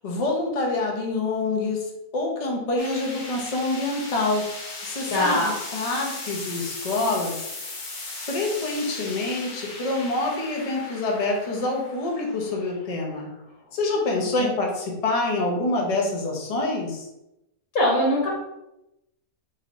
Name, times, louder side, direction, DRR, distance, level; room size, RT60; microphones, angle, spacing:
voice 1, 0.0-1.9 2.1-4.5 4.8-7.4 8.2-13.3 13.7-17.0, left 2 dB, 40° left, 0 dB, 0.6 m, -26 dB
sound 1, 2.8-13.9, left 3 dB, 85° left, 1.4 m, -38 dB
voice 2, 5.1-5.5 14.3-14.4 17.7-18.3, left 1 dB, 70° left, -5 dB, 1.4 m, -21 dB
4.1 x 3.0 x 2.5 m, 0.89 s
omnidirectional pair, 1.5 m